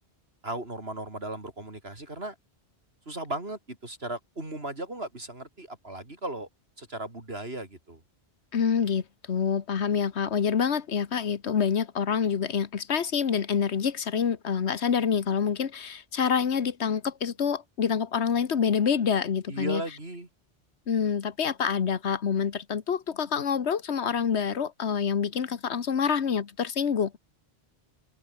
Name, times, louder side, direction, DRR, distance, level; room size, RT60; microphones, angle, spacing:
voice 1, 0.4-2.3 3.1-6.5 6.8-8.0 19.5-20.3, right 2 dB, 65° right, 4.9 m, -36 dB
voice 2, 8.5-19.8 20.9-27.1, left 7 dB, 80° left, 1.5 m, -27 dB
open air
omnidirectional pair, 1.1 m